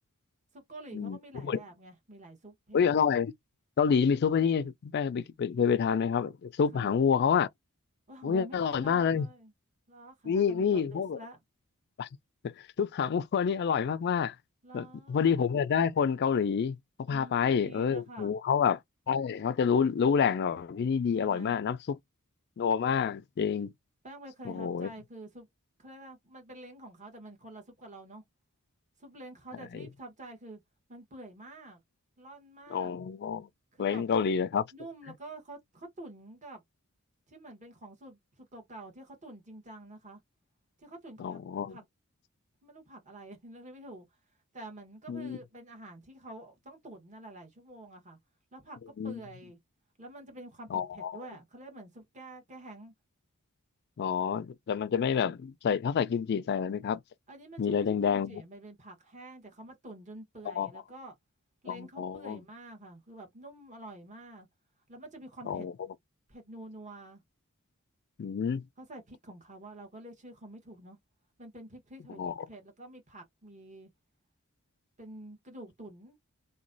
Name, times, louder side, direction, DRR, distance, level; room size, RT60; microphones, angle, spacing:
voice 1, 0.5-3.0 6.7-6.9 8.1-9.5 9.9-11.4 14.6-15.2 17.1-18.3 21.1-21.6 24.0-25.5 25.8-28.2 29.0-30.6 30.9-31.8 32.2-32.9 33.7-34.1 34.7-36.6 37.3-40.2 40.8-41.4 41.7-41.8 42.6-44.1 44.5-48.2 48.5-49.6 50.0-52.9 57.3-61.1 61.6-64.5 64.9-65.7 66.3-67.2 68.8-71.0 71.4-73.9 75.0-76.2, right 1 dB, 35° right, 1.3 m, -48 dB
voice 2, 2.7-3.3 3.8-7.5 8.2-9.3 10.3-11.2 12.0-12.1 12.4-14.3 14.7-16.8 17.1-18.8 19.1-22.0 22.6-23.7 24.4-24.9 29.7-29.9 32.7-33.5 33.8-34.7 41.2-41.8 45.1-45.4 49.0-49.2 50.7-51.1 54.0-57.0 57.6-58.4 60.6-60.7 61.7-62.4 65.5-65.7 68.2-68.7 72.2-72.3, left 6 dB, 50° left, 0.3 m, -28 dB
3.0 x 2.1 x 3.8 m
head